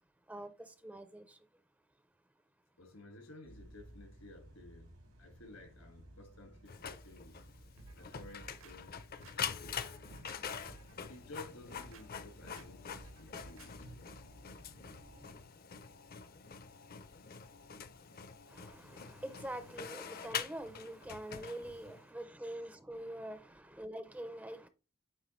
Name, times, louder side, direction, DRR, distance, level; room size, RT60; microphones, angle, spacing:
voice 1, 0.3-1.4 18.5-24.7, right 1 dB, 5° right, 0.4 m, -45 dB
voice 2, 2.8-4.9 5.2-7.5 7.9-9.9 11.1-14.1, left 1 dB, 75° left, 1.8 m, -54 dB
sound 1, 3.4-15.4, equal, 85° right, 2.3 m, -58 dB
Printer, 6.7-22.0, left 7 dB, 45° left, 0.5 m, -45 dB
sound 2, 7.8-8.7 9.2-10.4 10.7-11.0 11.5-12.1 12.5-12.7 12.9-13.7 14.1-14.2, right 3 dB, 65° right, 0.8 m, -56 dB
9.0 x 3.5 x 3.1 m
head